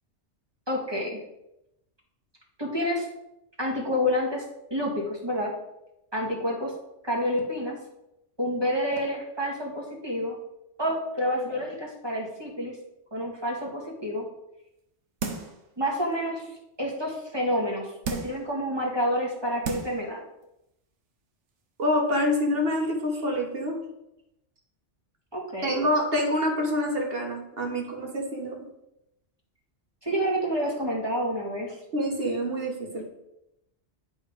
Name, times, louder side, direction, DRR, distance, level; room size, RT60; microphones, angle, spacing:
voice 1, 0.7-1.2 2.6-3.1 3.6-4.4 4.7-5.5 6.1-6.7 7.0-7.8 8.4-10.4 10.8-12.8 13.1-14.3 15.8-16.5 16.8-20.2 25.3-25.8 30.0-31.8, equal, 20° right, -2 dB, 2.0 m, -28 dB
sound 1, 15.2-15.6 16.1-16.2 18.0-18.5 19.2-19.3 19.6-20.1 20.4-20.5, right 4 dB, 80° right, 1.3 m, -33 dB
voice 2, 21.8-23.8 25.6-28.6 31.9-33.0, left 1 dB, 55° right, 1 dB, 1.8 m, -26 dB
10.0 x 4.2 x 5.2 m, 0.87 s
omnidirectional pair, 1.2 m